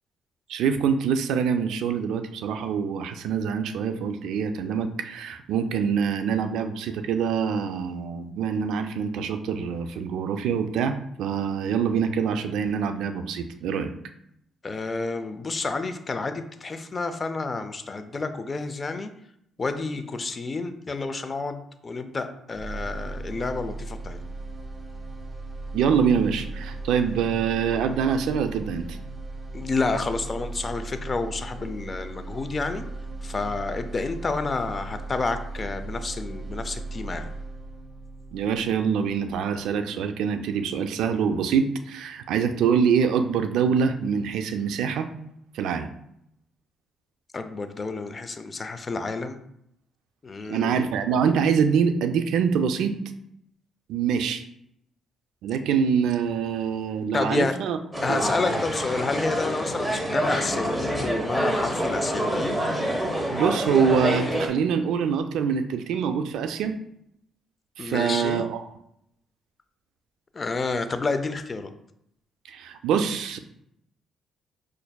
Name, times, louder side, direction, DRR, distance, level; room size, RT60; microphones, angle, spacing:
voice 1, 0.5-13.9 25.7-29.0 38.3-45.1 45.5-45.9 50.5-52.9 53.9-54.4 55.4-57.8 58.1-58.2 63.3-66.7 67.8-68.6 72.5-73.4, right 7 dB, 85° right, 8 dB, 0.3 m, -25 dB
voice 2, 14.6-19.1 19.6-24.2 29.5-32.9 33.2-37.3 47.3-49.4 50.2-50.9 57.1-57.6 58.0-62.6 67.8-68.5 70.3-71.7, left 3 dB, 35° left, 9 dB, 0.4 m, -29 dB
sound 1, 22.5-40.5, right 2 dB, 25° right, 1.0 m, -37 dB
sound 2, 57.9-64.5, equal, ahead, 0.9 m, -27 dB
5.1 x 2.5 x 2.2 m, 0.74 s
cardioid pair, 90°, 0 cm